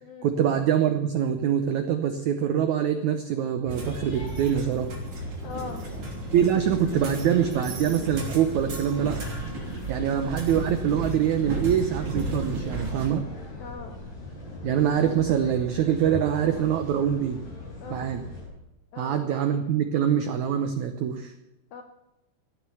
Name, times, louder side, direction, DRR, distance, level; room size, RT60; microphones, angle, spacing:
voice 1, 0.2-4.9 6.3-9.2 9.9-13.2 14.6-17.4 17.9-18.2 19.0-21.3, right 9 dB, 90° right, 8 dB, 1.6 m, -24 dB
sound 1, 3.7-18.5, left 2 dB, 55° left, 8.0 m, -40 dB
sound 2, 3.7-13.1, right 2 dB, 35° right, 3.7 m, -34 dB
voice 2, 5.4-5.8 10.0-10.1 13.6-14.0 17.8-18.1 18.9-19.2 21.7-21.8, left 5 dB, 75° left, 5 dB, 1.7 m, -40 dB
15.0 x 9.4 x 6.9 m, 0.95 s
omnidirectional pair, 4.6 m